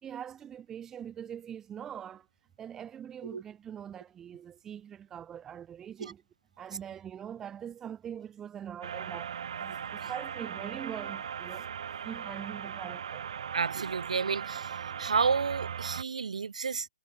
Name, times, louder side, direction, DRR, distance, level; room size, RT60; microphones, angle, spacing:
voice 1, 0.0-2.3 2.6-6.2 6.6-11.7 12.0-13.3, right 9 dB, 10° right, 5.1 m, -43 dB
sound 1, 8.8-16.0, right 8 dB, 55° right, 5.6 m, -38 dB
voice 2, 13.5-14.7 15.0-16.9, right 5 dB, 70° right, 2.5 m, -30 dB
hypercardioid pair, 150°, 4 cm